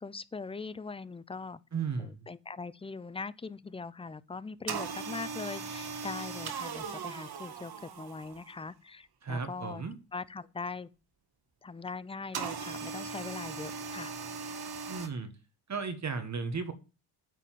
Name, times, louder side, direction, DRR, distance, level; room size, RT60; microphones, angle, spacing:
voice 1, 0.0-1.6 2.0-9.8 10.1-10.9 11.6-14.1, left 4 dB, 15° left, 0.4 m, -41 dB
voice 2, 1.7-2.2 9.2-10.0 14.9-15.3 15.7-16.7, right 5 dB, 40° right, 1.4 m, -35 dB
sound 1, 4.7-8.6 12.3-15.1, right 5 dB, 55° right, 1.7 m, -39 dB
9.3 x 4.2 x 7.4 m
cardioid pair, 80°, 44 cm